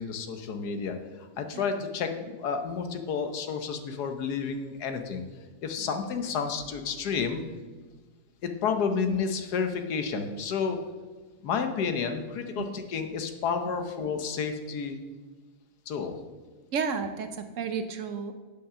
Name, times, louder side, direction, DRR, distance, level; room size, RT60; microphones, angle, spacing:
voice 1, 0.0-5.2 5.6-7.4 8.4-10.8 11.4-15.0 15.9-16.2, left 6 dB, 85° left, 7 dB, 1.5 m, -31 dB
voice 2, 16.7-18.3, right 6 dB, 65° right, 9 dB, 0.9 m, -32 dB
8.6 x 5.7 x 6.6 m, 1.3 s
omnidirectional pair, 1.7 m